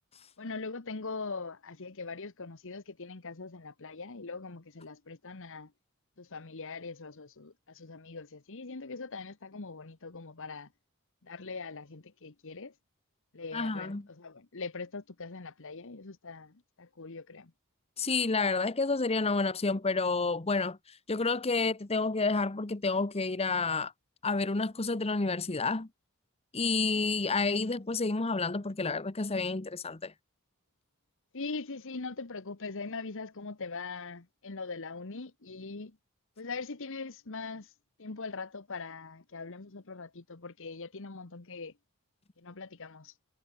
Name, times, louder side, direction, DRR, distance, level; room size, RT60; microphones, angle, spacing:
voice 1, 0.4-5.7 6.2-10.7 11.2-12.7 13.3-17.5 31.3-36.0 36.4-37.7 38.0-41.7 42.4-43.1, left 4 dB, 60° left, 1.3 m, -41 dB
voice 2, 13.5-14.1 18.0-23.9 24.2-25.9 26.5-30.1, left 3 dB, 25° left, 0.9 m, -30 dB
head